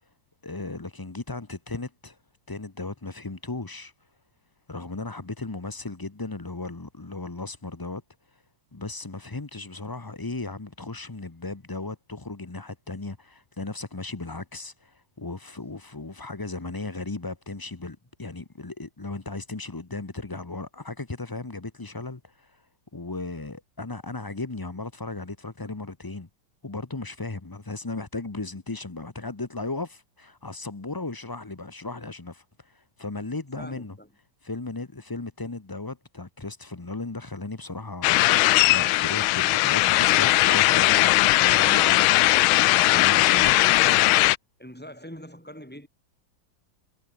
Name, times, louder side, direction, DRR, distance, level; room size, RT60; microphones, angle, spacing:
voice 1, 0.4-2.2 2.5-3.9 4.7-8.0 8.7-22.6 22.9-26.3 26.6-34.0 34.4-42.5 42.9-43.6, left 3 dB, 30° left, 0.4 m, -36 dB
voice 2, 33.6-34.1 44.6-45.9, equal, 5° left, 4.8 m, -43 dB
sound 1, 38.0-44.4, left 18 dB, 85° left, 1.4 m, -19 dB
omnidirectional pair, 2.2 m